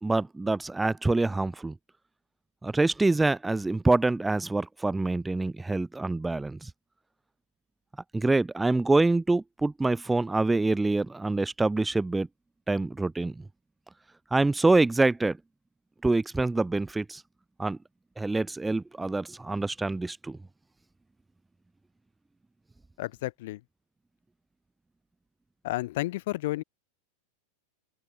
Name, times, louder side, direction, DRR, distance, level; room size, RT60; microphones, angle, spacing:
voice 1, 0.0-1.7 2.6-6.7 8.1-12.3 12.7-13.3 14.3-15.4 16.0-17.2 17.6-17.8 18.2-20.4, right 2 dB, 10° right, 2.3 m, -26 dB
voice 2, 23.0-23.6 25.6-26.6, left 18 dB, 50° left, 4.0 m, -31 dB
open air
figure-of-eight pair, 90°, 0 cm